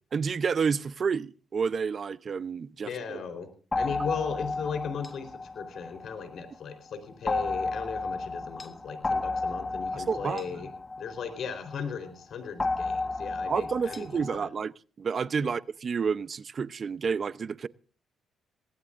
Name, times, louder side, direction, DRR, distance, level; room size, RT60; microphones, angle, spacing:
voice 1, 0.1-3.2 9.9-10.4 13.4-17.7, right 6 dB, 45° right, 0.7 m, -30 dB
voice 2, 2.8-3.5 3.7-10.7 11.0-14.5 15.4-15.5, left 6 dB, 65° left, 4.0 m, -37 dB
sound 1, 3.7-6.5 7.3-11.8 12.6-14.4, left 3 dB, 25° left, 1.2 m, -32 dB
21.0 x 19.0 x 2.6 m
cardioid pair, 90°, 0 cm